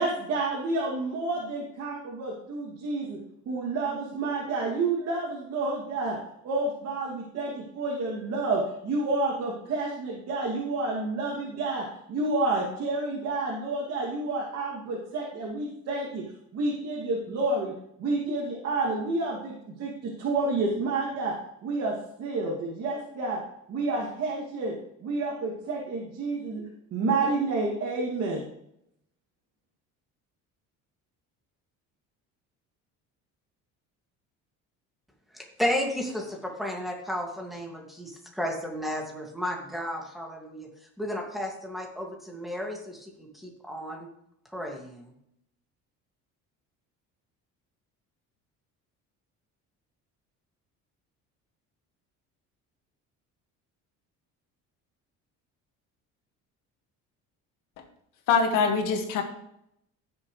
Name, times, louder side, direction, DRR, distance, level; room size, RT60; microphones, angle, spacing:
voice 1, 0.0-3.2 3.5-6.2 6.4-16.2 16.5-17.7 18.0-21.3 21.6-21.9 22.2-23.4 23.7-24.7 25.0-26.6 26.9-28.4, right 3 dB, 50° right, -4 dB, 2.6 m, -29 dB
voice 2, 35.3-40.7 41.0-44.1 44.5-45.1, left 1 dB, ahead, -1 dB, 2.3 m, -33 dB
voice 3, 58.3-59.2, left 5 dB, 80° left, 4 dB, 2.0 m, -23 dB
15.5 x 7.0 x 3.3 m, 0.77 s
cardioid pair, 140°, 31 cm